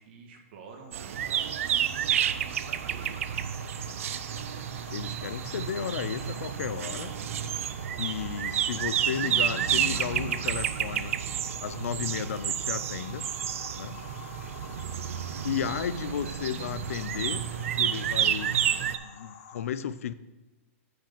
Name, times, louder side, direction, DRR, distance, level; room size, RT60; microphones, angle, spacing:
voice 1, 0.0-3.2 16.0-16.4, right 4 dB, 50° right, 3 dB, 1.4 m, -48 dB
sound 1, 0.7-19.6, left 7 dB, 35° left, 0.6 m, -48 dB
sound 2, 0.9-19.0, right 9 dB, 70° right, 0.4 m, -30 dB
voice 2, 4.9-7.1 8.0-11.2 11.6-13.3 13.7-14.0 15.4-18.6 19.0-20.1, left 8 dB, 80° left, 15 dB, 0.4 m, -34 dB
5.9 x 5.0 x 6.7 m, 1.1 s
hypercardioid pair, 155°, 8 cm